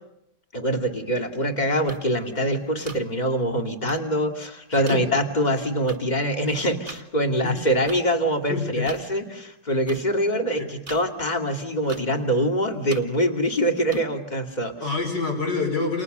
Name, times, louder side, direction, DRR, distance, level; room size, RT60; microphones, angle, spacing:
voice 1, 0.5-14.7, equal, 25° left, 4 dB, 2.8 m, -24 dB
sound 1, 1.9-2.0 2.9-3.0 3.9-4.0 4.9-5.0 5.9-6.0 6.9-7.0 7.9-8.0 8.9-9.0 9.9-10.0 10.9-11.0 11.9-12.0 12.9-13.0 13.9-14.0, right 4 dB, 30° right, 1.8 m, -38 dB
voice 2, 4.7-5.0 7.4-7.6 8.5-9.2 10.6-10.7 14.8-16.0, left 4 dB, 85° left, 3 dB, 5.9 m, -27 dB
29.5 x 29.0 x 6.9 m, 0.86 s
omnidirectional pair, 1.8 m